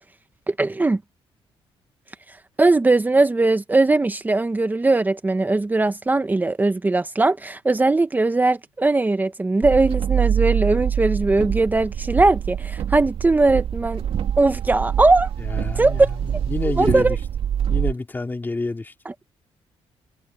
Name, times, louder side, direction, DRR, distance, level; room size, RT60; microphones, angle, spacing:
voice 1, 0.5-1.0 2.6-14.0 14.4-15.3 15.8-16.1 16.8-17.2, right 2 dB, 15° right, 1.1 m, -19 dB
sound 1, 9.6-17.9, right 9 dB, 65° right, 2.8 m, -25 dB
voice 2, 15.4-17.2 17.7-18.9, left 3 dB, 20° left, 3.4 m, -28 dB
cardioid pair, 115°, 10 cm